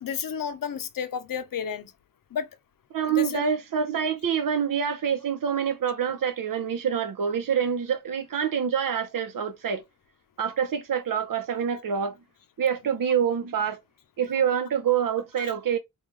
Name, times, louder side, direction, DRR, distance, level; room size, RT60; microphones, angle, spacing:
voice 1, 0.0-1.9 2.3-2.5 3.2-3.4, left 7 dB, 90° left, 0.6 m, -31 dB
voice 2, 2.9-9.8 10.4-12.2 12.6-13.8 14.2-15.8, right 8 dB, 80° right, 0.7 m, -26 dB
3.7 x 2.3 x 3.0 m
wide cardioid pair, 80°, 33 cm